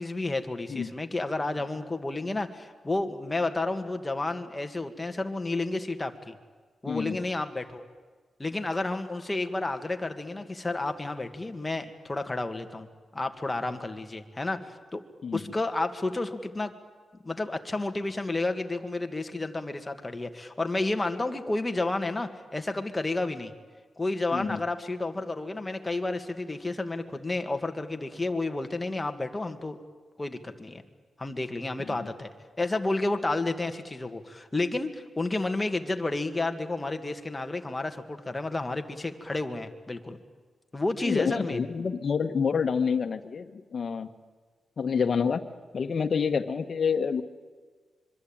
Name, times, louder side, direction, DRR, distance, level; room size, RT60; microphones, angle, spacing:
voice 1, 0.0-6.4 6.8-7.8 8.4-12.9 13.1-15.0 15.3-16.7 17.2-23.5 24.0-29.8 30.2-30.8 31.2-32.3 32.6-40.2 40.7-41.7, left 2 dB, 15° left, 6 dB, 2.0 m, -31 dB
voice 2, 6.9-7.2 15.2-15.4 24.3-24.6 31.9-32.0 41.0-44.1 44.8-45.4 45.7-47.2, left 6 dB, 50° left, 7 dB, 1.5 m, -28 dB
25.5 x 23.5 x 8.9 m, 1.5 s
wide cardioid pair, 105°, 0 cm